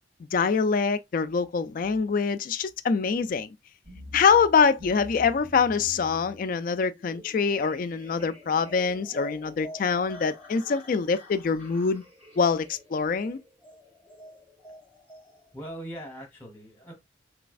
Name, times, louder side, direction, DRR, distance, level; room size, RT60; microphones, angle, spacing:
voice 1, 0.3-3.5 4.1-12.0 12.4-13.4, left 5 dB, 45° left, 0.3 m, -24 dB
sound 1, 3.8-15.7, left 1 dB, 30° right, 1.7 m, -47 dB
voice 2, 15.5-16.9, right 1 dB, 10° left, 1.1 m, -40 dB
3.3 x 3.1 x 2.4 m
head